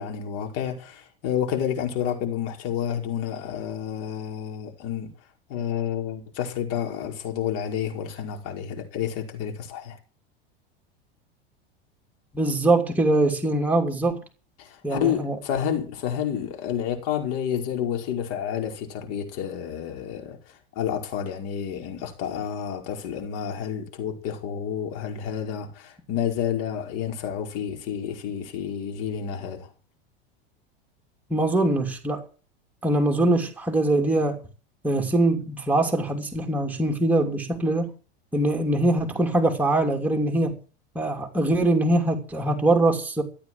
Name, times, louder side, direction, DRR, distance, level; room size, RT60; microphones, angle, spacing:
voice 1, 0.0-5.1 5.5-10.0 14.6-29.7, left 9 dB, 55° left, 5.1 m, -30 dB
voice 2, 12.3-14.2 14.8-15.4 31.3-32.2 32.8-34.4 34.8-37.9 38.3-40.5 40.9-43.2, right 2 dB, 5° right, 3.0 m, -22 dB
14.5 x 8.7 x 7.8 m
hypercardioid pair, 95°, 30 cm